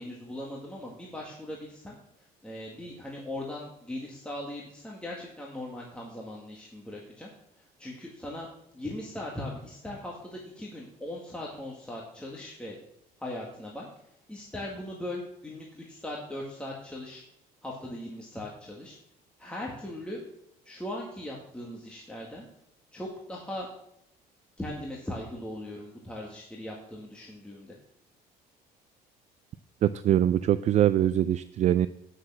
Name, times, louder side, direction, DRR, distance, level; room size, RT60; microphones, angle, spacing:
voice 1, 0.0-7.3 7.8-8.5 8.7-12.8 13.2-13.9 14.3-17.2 17.6-19.0 19.4-20.2 20.6-22.5 22.9-23.7 24.6-27.8, left 1 dB, 5° left, -3 dB, 1.9 m, -39 dB
voice 2, 29.8-31.9, right 11 dB, 45° right, 13 dB, 0.4 m, -23 dB
9.6 x 6.6 x 7.4 m, 0.76 s
cardioid pair, 125°, 16 cm